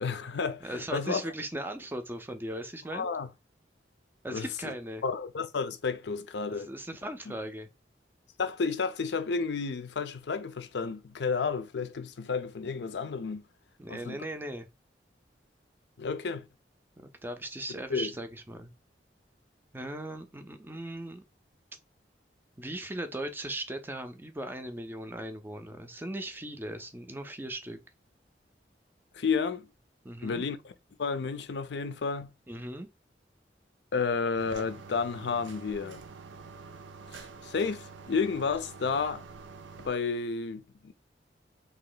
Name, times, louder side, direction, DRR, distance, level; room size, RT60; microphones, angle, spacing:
voice 1, 0.0-1.2 2.9-3.3 4.3-4.7 5.0-6.7 7.3-7.4 8.4-13.4 13.9-14.2 16.0-16.5 17.9-18.1 29.1-29.7 30.2-30.7 31.0-32.3 33.9-36.0 37.1-39.2 39.8-40.9, left 5 dB, 75° left, 0.5 m, -31 dB
voice 2, 0.6-3.1 4.2-5.0 6.5-7.7 13.8-14.7 17.0-18.7 19.7-21.2 22.6-27.8 30.0-30.4 32.5-32.9, right 1 dB, 10° right, 0.4 m, -38 dB
sound 1, 34.4-39.9, right 4 dB, 90° right, 0.5 m, -47 dB
2.9 x 2.8 x 3.9 m
head